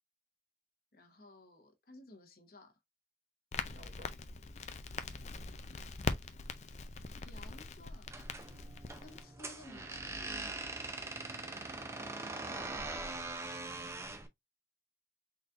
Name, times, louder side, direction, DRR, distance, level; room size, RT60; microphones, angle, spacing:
voice 1, 0.9-2.8 7.1-8.1 9.0-10.6 11.5-11.9, left 2 dB, 55° left, 1.1 m, -56 dB
Crackle, 3.5-9.2, left 4 dB, 40° left, 0.4 m, -42 dB
voice 2, 3.7-4.2 8.5-8.8 11.1-11.7 12.1-12.8, right 2 dB, 50° right, 1.4 m, -59 dB
sound 1, 8.1-14.3, right 2 dB, 15° right, 0.5 m, -42 dB
4.1 x 4.0 x 2.4 m
head